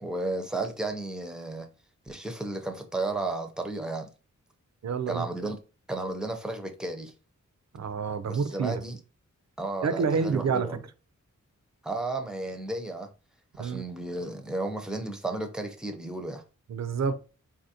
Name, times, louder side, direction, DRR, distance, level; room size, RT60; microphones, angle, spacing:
voice 1, 0.0-1.7 2.1-4.1 5.1-5.6 5.9-7.1 8.3-9.0 9.6-10.8 11.8-13.1 13.6-16.4, right 2 dB, ahead, 0.6 m, -33 dB
voice 2, 4.8-5.3 7.7-8.8 9.8-10.8 13.6-13.8 16.7-17.2, right 5 dB, 60° right, 0.4 m, -28 dB
4.0 x 2.5 x 2.7 m
wide cardioid pair, 70°, 31 cm